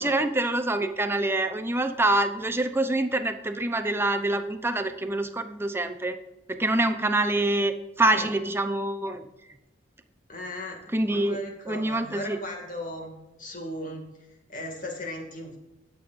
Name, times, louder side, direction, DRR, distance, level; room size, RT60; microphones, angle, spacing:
voice 1, 0.0-6.2 6.5-9.2 10.9-11.4 11.7-12.4, right 2 dB, 15° right, 8 dB, 0.7 m, -26 dB
voice 2, 10.3-14.1 14.5-15.6, left 1 dB, 45° left, 2 dB, 2.3 m, -37 dB
20.5 x 7.1 x 2.6 m, 0.96 s
head